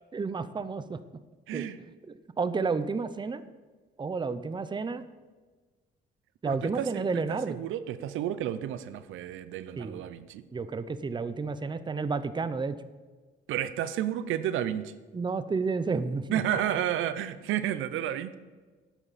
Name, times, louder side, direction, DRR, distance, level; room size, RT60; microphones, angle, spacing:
voice 1, 0.1-1.0 1.5-1.6 2.4-3.4 4.0-5.0 6.4-7.6 9.8-10.0 10.5-12.8 15.1-16.4, right 4 dB, 25° right, 13 dB, 0.6 m, -31 dB
voice 2, 1.5-1.8 6.4-10.4 13.5-14.9 16.3-18.3, right 11 dB, 85° right, 13 dB, 0.6 m, -31 dB
12.0 x 9.1 x 4.2 m, 1.3 s
cardioid pair, 90°, 20 cm